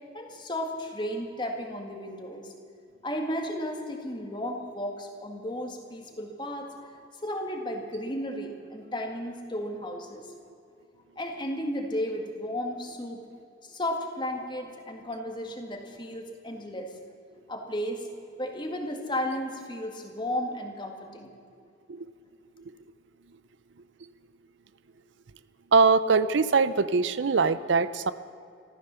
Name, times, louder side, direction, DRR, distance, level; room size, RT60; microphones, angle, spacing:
voice 1, 0.1-2.5 3.0-10.3 11.2-13.2 13.6-16.9 17.5-18.1 18.4-21.3, left 1 dB, 25° left, 3 dB, 1.8 m, -34 dB
voice 2, 25.7-28.1, right 4 dB, 75° right, 14 dB, 0.5 m, -22 dB
14.0 x 13.5 x 6.8 m, 2.5 s
head